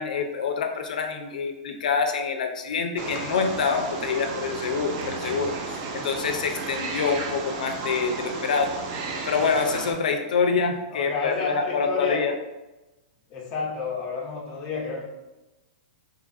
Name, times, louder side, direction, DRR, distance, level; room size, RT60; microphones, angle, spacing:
voice 1, 0.0-8.7 9.2-12.3, left 5 dB, 85° left, 5 dB, 0.3 m, -26 dB
Wild animals, 3.0-9.9, right 4 dB, 35° right, 0.3 m, -33 dB
voice 2, 10.3-12.2 13.3-15.0, left 4 dB, 25° left, -2 dB, 0.5 m, -31 dB
2.8 x 2.3 x 2.4 m, 1.0 s
supercardioid pair, 165°, 4 cm